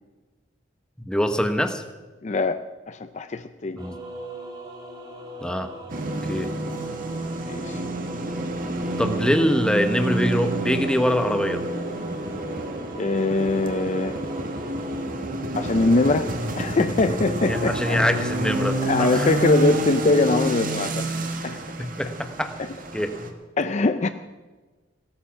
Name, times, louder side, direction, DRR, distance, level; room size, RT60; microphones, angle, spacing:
voice 1, 1.1-1.8 3.8-4.0 5.4-5.7 6.3-6.5 9.0-11.6 17.4-19.3 21.8-22.5 22.9-23.3, equal, 5° left, 7 dB, 1.0 m, -24 dB
voice 2, 2.2-3.8 7.5-7.8 13.0-14.2 15.6-18.0 18.8-21.1 21.4-21.6 23.6-24.1, left 3 dB, 40° left, 10 dB, 0.5 m, -22 dB
sound 1, 3.8-15.1, right 1 dB, 25° right, 2.7 m, -39 dB
sound 2, 5.9-23.3, right 1 dB, 45° right, 1.5 m, -29 dB
17.0 x 13.0 x 5.9 m, 1.3 s
head